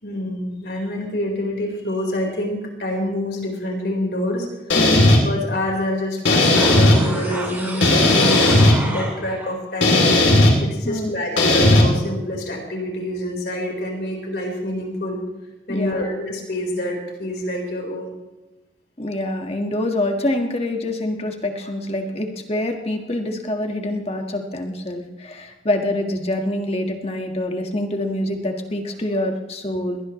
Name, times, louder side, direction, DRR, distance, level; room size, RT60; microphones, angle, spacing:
voice 1, 0.0-4.8 5.2-10.1 10.6-15.2 15.7-18.2, left 1 dB, 60° left, 0 dB, 4.5 m, -27 dB
sound 1, 4.7-5.2 6.2-7.0 7.8-8.7 9.8-10.5 11.4-11.8, left 2 dB, 90° left, 3.2 m, -14 dB
voice 2, 4.7-5.1 10.9-11.1 15.7-16.1 19.0-30.0, left 1 dB, 35° left, 4 dB, 1.7 m, -25 dB
sound 2, 6.6-9.5 9.9-10.0, right 1 dB, 10° right, 3.0 m, -30 dB
21.5 x 18.5 x 3.2 m, 1.0 s
head